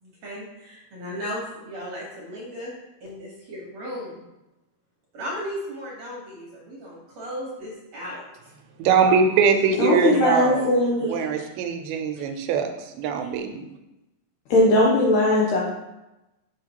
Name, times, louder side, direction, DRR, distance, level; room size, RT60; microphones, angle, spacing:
voice 1, 0.0-2.7 3.0-4.1 5.1-8.2 9.6-9.8 10.1-10.4 11.3-11.4, equal, 60° right, -4 dB, 1.9 m, -35 dB
voice 2, 8.8-10.8 11.1-13.6, right 6 dB, 85° right, 5 dB, 2.6 m, -22 dB
voice 3, 9.8-11.1 14.5-15.6, left 1 dB, 75° left, -3 dB, 2.0 m, -19 dB
6.7 x 5.7 x 2.9 m, 0.95 s
omnidirectional pair, 4.4 m